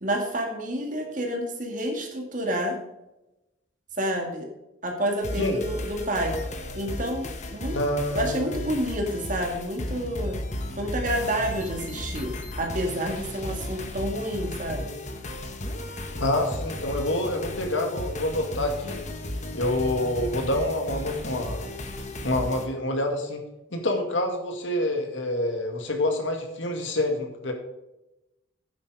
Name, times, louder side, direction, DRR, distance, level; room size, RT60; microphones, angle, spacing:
voice 1, 0.0-2.8 4.0-4.5 4.8-6.4 6.7-7.8 8.1-10.4 10.8-15.0, right 1 dB, 40° right, 2 dB, 2.0 m, -29 dB
sound 1, 5.2-22.7, left 1 dB, 35° left, 1.1 m, -35 dB
voice 2, 7.7-8.7 16.2-19.0 19.5-21.6 22.2-23.4 23.7-27.5, left 1 dB, 70° left, 3 dB, 2.0 m, -27 dB
9.9 x 7.7 x 4.8 m, 0.94 s
head